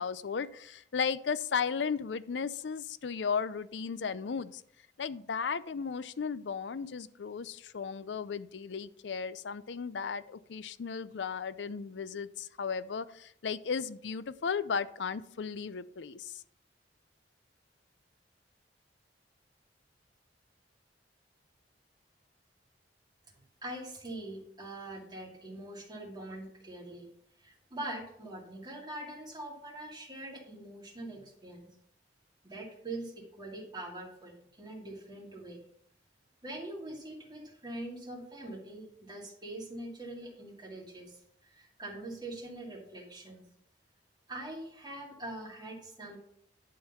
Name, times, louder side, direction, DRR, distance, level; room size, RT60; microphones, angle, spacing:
voice 1, 0.0-4.6 5.0-16.4, left 6 dB, 75° left, 16 dB, 0.5 m, -35 dB
voice 2, 23.6-27.1 27.4-31.7 32.4-35.6 36.4-43.4 44.3-46.2, right 1 dB, 25° right, -1 dB, 2.2 m, -43 dB
10.5 x 3.9 x 6.8 m, 0.69 s
head